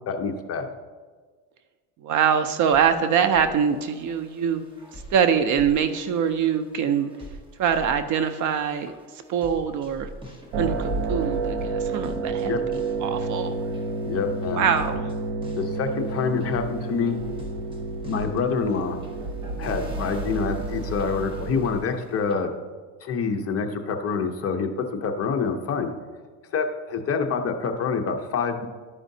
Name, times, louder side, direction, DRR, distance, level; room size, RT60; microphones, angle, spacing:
voice 1, 0.1-0.7 12.4-12.6 14.0-14.7 15.6-17.2 18.0-19.0 19.6-22.5 23.0-24.7 25.0-25.9 26.5-28.7, left 5 dB, 35° left, 5 dB, 0.6 m, -26 dB
voice 2, 2.0-4.6 4.9-7.1 7.6-8.9 9.3-10.1 10.6-12.5 13.0-13.5 14.5-15.1, right 7 dB, 45° right, 10 dB, 0.4 m, -23 dB
sound 1, 2.6-22.3, equal, 10° right, 0.9 m, -46 dB
sound 2, 10.5-21.8, right 3 dB, 90° right, 0.9 m, -30 dB
12.0 x 5.0 x 2.7 m, 1.5 s
cardioid pair, 135°, 44 cm